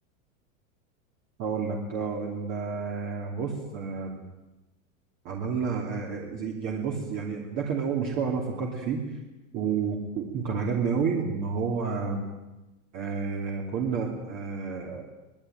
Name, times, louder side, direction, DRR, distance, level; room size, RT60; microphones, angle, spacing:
voice 1, 1.4-4.2 5.2-9.2 9.5-12.3 12.9-15.0, right 5 dB, 30° right, 0 dB, 2.9 m, -30 dB
24.5 x 20.5 x 9.2 m, 1.0 s
supercardioid pair, 175°, 41 cm